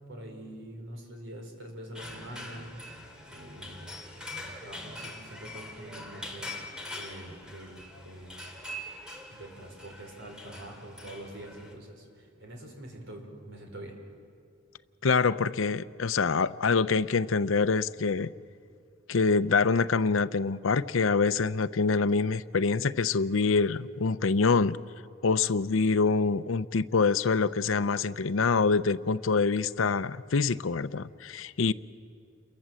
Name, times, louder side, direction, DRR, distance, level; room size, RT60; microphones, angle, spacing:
voice 1, 0.1-8.5 9.3-13.9, right 1 dB, 65° right, 2 dB, 5.1 m, -45 dB
sound 1, 1.9-11.7, left 1 dB, 5° right, 2.9 m, -43 dB
voice 2, 15.0-18.3 19.1-24.8 25.2-31.7, left 4 dB, 80° left, 14 dB, 0.6 m, -25 dB
29.0 x 23.0 x 7.6 m, 2.3 s
head